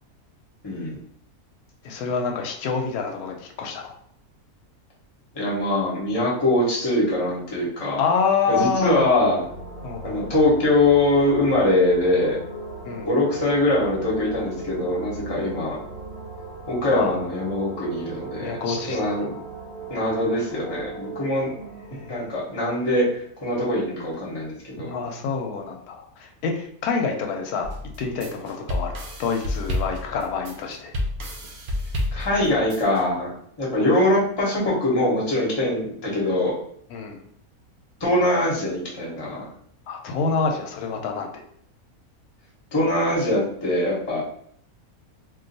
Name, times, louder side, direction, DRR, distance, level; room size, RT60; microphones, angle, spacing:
voice 1, 0.6-1.0 5.3-8.0 8.5-9.4 10.0-12.4 13.0-15.8 16.7-19.3 19.9-23.1 23.4-24.9 32.1-33.3 33.6-36.5 38.0-39.5 42.7-44.2, left 1 dB, 20° left, -5 dB, 0.7 m, -23 dB
voice 2, 1.8-3.9 8.0-9.1 9.8-10.2 12.8-13.1 16.9-17.1 18.4-19.3 21.9-22.3 24.8-27.7 28.0-30.9 36.9-37.2 39.9-41.4, left 5 dB, 85° left, 3 dB, 1.1 m, -27 dB
sound 1, 8.3-23.8, right 2 dB, 55° left, 0.8 m, -38 dB
sound 2, 27.6-33.0, left 1 dB, 70° right, 0.5 m, -30 dB
2.5 x 2.3 x 3.9 m, 0.65 s
omnidirectional pair, 1.5 m